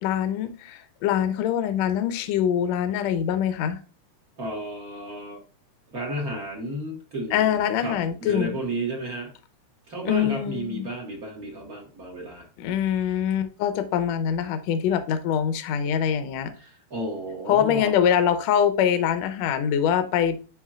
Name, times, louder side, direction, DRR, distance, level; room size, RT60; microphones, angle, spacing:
voice 1, 0.0-3.8 7.3-8.6 10.1-10.9 12.6-16.5 17.5-20.4, left 9 dB, 70° left, 9 dB, 1.8 m, -24 dB
voice 2, 4.4-5.4 5.9-9.3 9.9-12.5 16.6-17.9, right 1 dB, 35° right, -1 dB, 1.7 m, -33 dB
8.9 x 5.2 x 2.4 m, 0.36 s
omnidirectional pair, 3.7 m